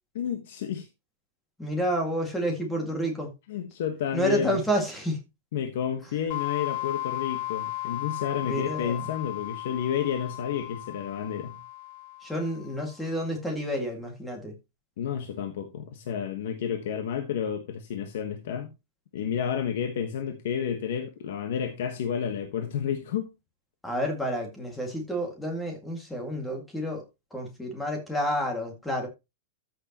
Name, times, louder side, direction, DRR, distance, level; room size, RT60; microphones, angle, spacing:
voice 1, 0.1-0.9 3.5-4.6 5.5-11.6 15.0-18.7 19.1-23.3, left 8 dB, 55° left, 1.3 m, -31 dB
voice 2, 1.6-3.3 4.1-5.2 8.4-9.0 12.2-14.5 23.8-27.0 27.3-29.1, equal, 5° left, 2.1 m, -29 dB
sound 1, 6.3-12.8, left 18 dB, 40° left, 0.6 m, -35 dB
13.5 x 6.6 x 3.0 m
supercardioid pair, 180°, 0 cm